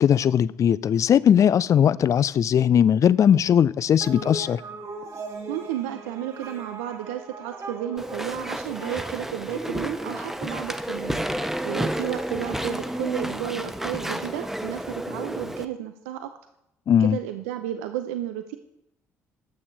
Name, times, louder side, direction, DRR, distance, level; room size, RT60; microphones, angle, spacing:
voice 1, 0.0-4.6 16.9-17.2, left 9 dB, 45° left, 0.4 m, -19 dB
sound 1, 4.0-13.8, right 3 dB, 45° right, 2.4 m, -41 dB
voice 2, 5.5-11.2 11.6-16.3 17.0-18.6, right 11 dB, 75° right, 0.6 m, -32 dB
Walk footsteps / Chatter / Squeak, 8.0-15.6, right 1 dB, 5° right, 1.0 m, -31 dB
12.5 x 8.5 x 4.6 m
figure-of-eight pair, 45°, 8 cm